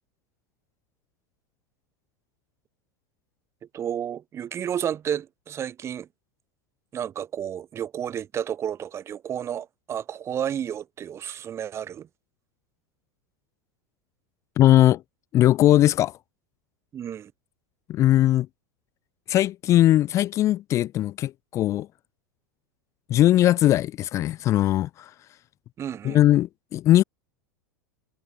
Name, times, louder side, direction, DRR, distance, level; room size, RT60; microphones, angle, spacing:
voice 1, 3.7-6.1 6.9-12.1 16.9-17.3 25.8-26.2, right 9 dB, 30° right, 3.6 m, -31 dB
voice 2, 14.6-15.0 15.3-16.2 17.9-18.5 19.3-21.9 23.1-25.1 26.0-27.0, left 14 dB, 35° left, 0.5 m, -19 dB
figure-of-eight pair, 85°, 9 cm